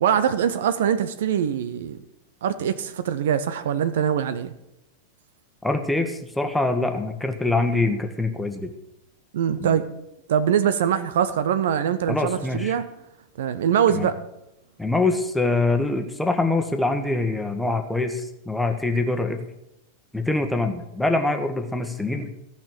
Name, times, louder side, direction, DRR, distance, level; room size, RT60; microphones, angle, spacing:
voice 1, 0.0-2.0 2.4-4.5 9.3-9.9 10.3-12.8 13.4-14.2, right 8 dB, 60° right, 12 dB, 0.7 m, -23 dB
voice 2, 5.6-8.7 9.6-9.7 12.1-12.7 13.9-14.1 14.8-19.4 20.1-22.3, left 2 dB, 5° left, 5 dB, 1.5 m, -24 dB
15.0 x 5.9 x 8.9 m, 0.86 s
figure-of-eight pair, 90°, 0 cm